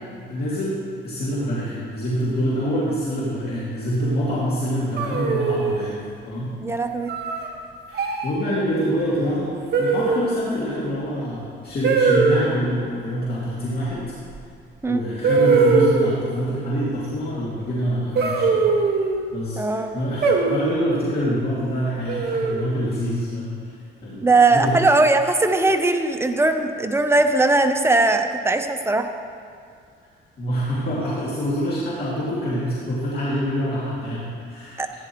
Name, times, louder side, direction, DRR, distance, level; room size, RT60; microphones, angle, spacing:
voice 1, 0.1-6.0 6.3-6.5 7.3-7.5 7.9-9.5 9.8-14.0 14.9-18.8 19.3-23.8 24.0-24.8 30.4-35.0, equal, 50° left, -8 dB, 2.4 m, -26 dB
sound 1, 5.0-5.8 7.1-7.5 7.9-8.3 9.7-10.4 11.8-12.4 14.4-14.5 15.2-16.2 18.2-19.2 20.2-20.9 22.1-22.7, right 4 dB, 55° right, 1.4 m, -20 dB
voice 2, 6.6-7.1 14.8-15.0 19.6-20.0 24.2-29.1 34.8-35.0, right 2 dB, 10° right, 6 dB, 0.8 m, -19 dB
15.0 x 9.9 x 3.1 m, 2.2 s
cardioid pair, 90°, 20 cm